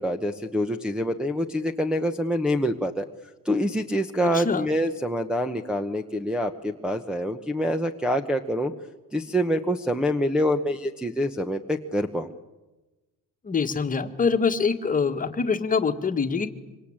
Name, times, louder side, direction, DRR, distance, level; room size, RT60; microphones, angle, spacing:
voice 1, 0.0-3.0 3.4-8.7 9.1-12.3, equal, ahead, 1 dB, 0.9 m, -26 dB
voice 2, 4.3-4.6 13.4-16.5, left 5 dB, 25° left, 7 dB, 1.7 m, -24 dB
26.0 x 25.0 x 8.8 m, 1.1 s
cardioid pair, 155°, 35 cm